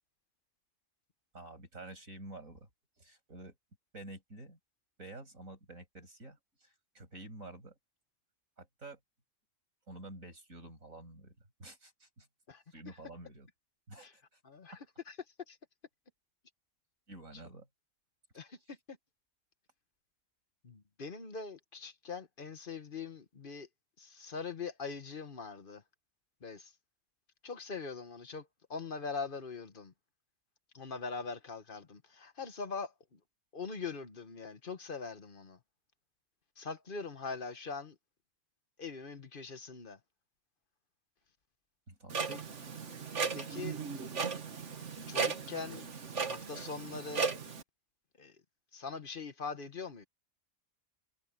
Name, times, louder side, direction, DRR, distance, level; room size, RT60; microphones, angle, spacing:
voice 1, 1.3-2.7 3.0-3.6 3.9-4.6 5.0-7.8 8.6-9.0 9.9-12.3 12.7-13.5 13.9-14.4 17.1-17.7 41.9-42.5, right 2 dB, 90° right, 7.2 m, -50 dB
voice 2, 14.4-14.8 15.1-15.2 15.5-15.6 18.3-19.0 20.6-23.7 24.0-25.8 26.4-26.7 27.4-29.9 30.7-33.2 33.5-35.6 36.6-37.9 38.8-40.0 42.3-42.4 43.3-43.8 45.1-45.8 46.2-47.3 48.2-48.3 48.7-50.0, left 4 dB, 45° left, 1.3 m, -42 dB
Clock, 42.1-47.6, right 5 dB, 65° right, 1.8 m, -36 dB
omnidirectional pair, 1.4 m